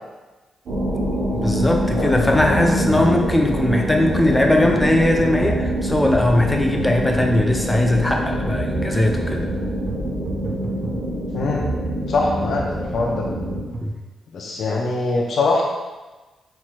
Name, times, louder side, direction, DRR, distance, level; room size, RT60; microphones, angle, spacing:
sound 1, 0.7-13.6, right 1 dB, 75° right, 1.1 m, -25 dB
voice 1, 1.3-9.5 13.8-13.9, left 1 dB, 15° left, 2 dB, 0.6 m, -19 dB
voice 2, 1.9-3.0 11.3-11.7 12.1-12.6 12.9-13.3 14.3-15.6, left 3 dB, 65° left, -1 dB, 0.5 m, -23 dB
sound 2, 2.1-14.0, right 2 dB, 55° right, 0.5 m, -33 dB
4.4 x 4.2 x 2.4 m, 1.2 s
supercardioid pair, 50°, 0 cm